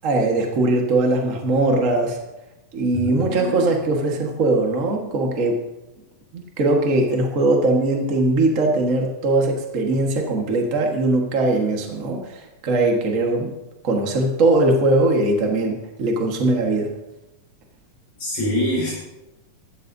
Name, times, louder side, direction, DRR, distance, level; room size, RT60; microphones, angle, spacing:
voice 1, 0.0-2.2 2.7-5.6 6.3-13.5 13.8-16.9, right 2 dB, 75° right, 1 dB, 0.7 m, -20 dB
voice 2, 2.9-3.7 18.2-18.9, left 1 dB, 60° left, -7 dB, 6.7 m, -25 dB
15.5 x 13.0 x 2.7 m, 0.99 s
omnidirectional pair, 4.1 m